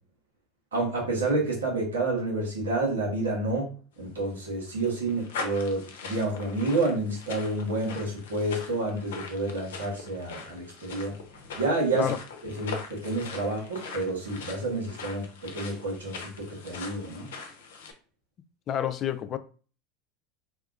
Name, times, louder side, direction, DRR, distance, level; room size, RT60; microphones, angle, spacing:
voice 1, 0.7-11.2 11.5-12.1 12.4-17.3, right 2 dB, 90° right, 1.2 m, -29 dB
sound 1, 4.1-17.9, left 4 dB, 80° left, 0.6 m, -42 dB
voice 2, 18.7-19.4, left 10 dB, 40° left, 0.4 m, -29 dB
2.8 x 2.3 x 3.5 m
hypercardioid pair, 90°, 0 cm